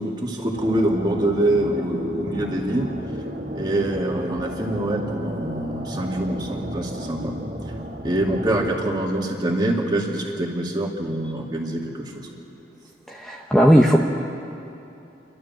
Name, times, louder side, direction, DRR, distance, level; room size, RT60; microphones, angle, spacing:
voice 1, 0.0-2.9 3.5-7.3 8.0-12.3, right 1 dB, 25° right, -1 dB, 2.2 m, -25 dB
sound 1, 0.5-8.8, equal, 55° right, 2.2 m, -33 dB
voice 2, 13.2-14.0, equal, 5° left, 0 dB, 0.7 m, -15 dB
29.0 x 12.0 x 7.5 m, 2.8 s
head